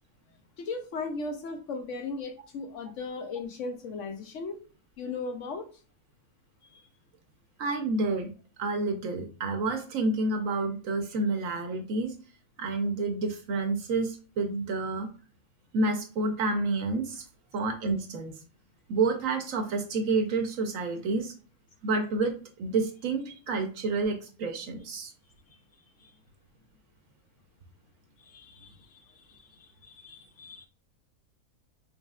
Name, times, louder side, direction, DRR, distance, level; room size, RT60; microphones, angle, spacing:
voice 1, 0.6-4.6 5.0-5.7 6.6-6.9 26.0-26.1 28.2-30.7, left 3 dB, 65° left, 6 dB, 0.9 m, -38 dB
voice 2, 7.6-8.3 8.6-12.1 12.6-15.1 15.7-17.2 17.5-18.3 18.9-21.3 21.8-22.3 22.6-25.1, right 3 dB, 65° right, 5 dB, 1.0 m, -29 dB
5.6 x 3.1 x 2.3 m, 0.37 s
omnidirectional pair, 1.6 m